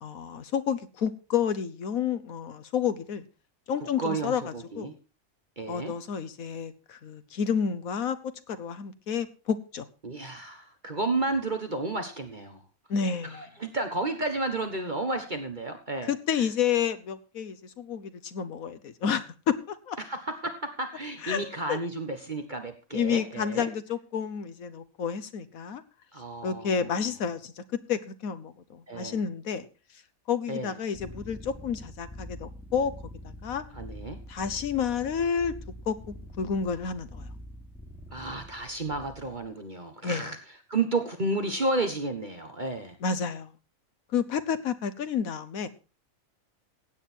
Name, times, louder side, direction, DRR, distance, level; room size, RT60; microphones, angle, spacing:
voice 1, 0.0-3.2 3.7-4.9 5.7-8.2 8.5-9.9 12.9-13.5 16.0-20.0 21.2-21.8 22.9-25.8 26.4-29.7 30.3-32.9 33.2-33.6 34.3-35.6 35.9-37.3 40.0-40.3 43.0-43.5 44.1-45.7, left 7 dB, 85° left, 13 dB, 1.4 m, -30 dB
voice 2, 3.8-4.9 5.6-5.9 10.0-12.6 13.3-16.1 16.4-16.5 20.0-23.7 26.1-26.9 28.9-29.2 30.5-30.7 33.7-34.2 38.1-40.4 40.7-43.0, right 2 dB, 35° right, 6 dB, 1.5 m, -32 dB
sound 1, 30.9-39.4, equal, ahead, 2.9 m, -45 dB
16.0 x 9.2 x 4.4 m, 0.32 s
omnidirectional pair, 1.4 m